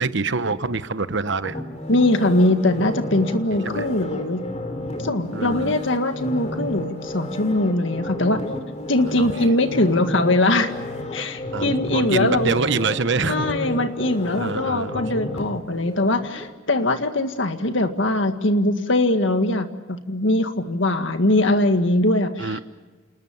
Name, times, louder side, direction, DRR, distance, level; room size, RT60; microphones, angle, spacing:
voice 1, 0.0-1.6 3.6-3.9 5.3-5.8 9.2-9.5 11.5-13.6 14.4-15.1 22.4-22.6, right 4 dB, 60° right, 12 dB, 1.1 m, -25 dB
sound 1, 1.4-16.5 16.9-17.0, left 1 dB, 35° left, 3.2 m, -32 dB
voice 2, 1.9-4.4 5.0-8.4 8.9-10.8 11.1-12.5 13.3-22.6, left 1 dB, 65° left, 8 dB, 1.9 m, -21 dB
28.5 x 20.0 x 7.2 m, 1.3 s
head